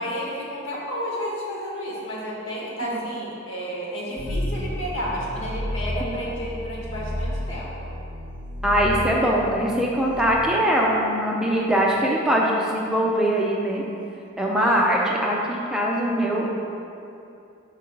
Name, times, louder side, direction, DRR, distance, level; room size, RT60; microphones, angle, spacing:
voice 1, 0.0-7.9 14.5-15.0, equal, 75° left, -4 dB, 1.4 m, -31 dB
sound 1, 4.2-11.8, equal, 40° right, 0.6 m, -32 dB
voice 2, 8.6-13.8 14.4-16.5, equal, 5° right, -3 dB, 0.5 m, -22 dB
5.4 x 5.3 x 3.9 m, 2.7 s
head